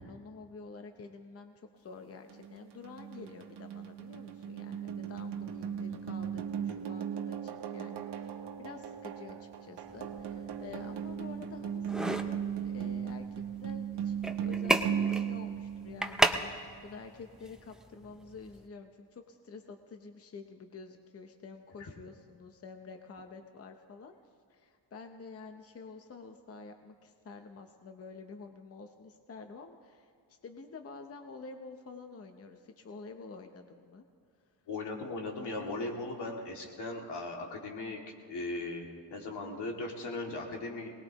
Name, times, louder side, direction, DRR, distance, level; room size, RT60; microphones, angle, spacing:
voice 1, 0.0-8.3 8.6-24.1 24.5-34.0, left 4 dB, 35° left, 5 dB, 0.8 m, -49 dB
sound 1, 2.3-16.5, right 8 dB, 80° right, 1.2 m, -37 dB
sound 2, 9.9-18.7, right 1 dB, ahead, 0.5 m, -35 dB
voice 2, 34.7-38.0 38.3-40.9, left 2 dB, 80° left, 0 dB, 2.4 m, -38 dB
23.0 x 19.5 x 3.0 m, 2.4 s
wide cardioid pair, 165°, 40 cm